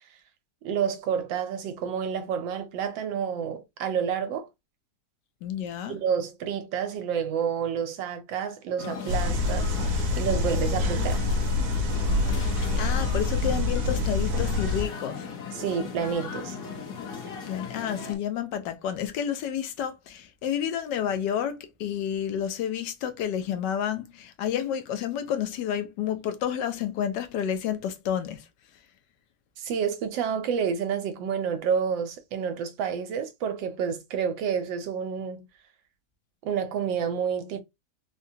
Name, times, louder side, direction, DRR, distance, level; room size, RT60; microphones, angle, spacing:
voice 1, 0.6-4.5 5.9-11.2 15.5-16.6 29.6-35.5 36.4-37.6, right 7 dB, 90° right, 1.4 m, -29 dB
voice 2, 5.4-6.0 12.8-15.3 17.5-28.5, left 9 dB, 75° left, 1.2 m, -30 dB
sound 1, 8.8-18.2, left 6 dB, 55° left, 1.2 m, -37 dB
sound 2, 9.1-14.8, left 2 dB, 65° right, 1.1 m, -26 dB
3.8 x 2.2 x 2.7 m
omnidirectional pair, 2.0 m